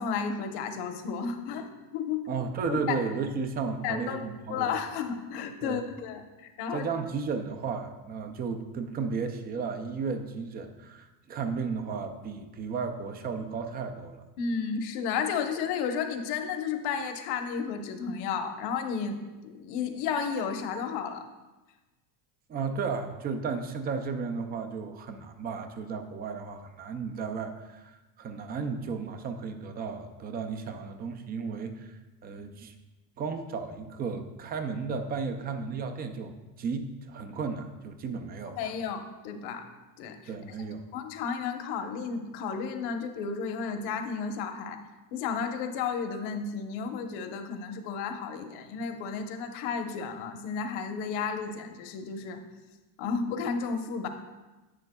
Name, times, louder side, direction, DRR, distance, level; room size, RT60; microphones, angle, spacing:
voice 1, 0.0-2.2 2.7-3.0 3.8-6.9 14.4-19.2 19.4-21.2 38.5-39.6 40.0-40.2 40.9-44.8 45.1-52.4 53.0-54.1, left 6 dB, 55° left, 6 dB, 1.0 m, -32 dB
voice 2, 2.3-4.8 5.6-5.8 6.7-14.2 22.5-32.7 33.2-38.7 40.3-40.8, right 5 dB, 25° right, 7 dB, 0.3 m, -34 dB
10.5 x 8.5 x 2.2 m, 1.1 s
cardioid pair, 140°, 47 cm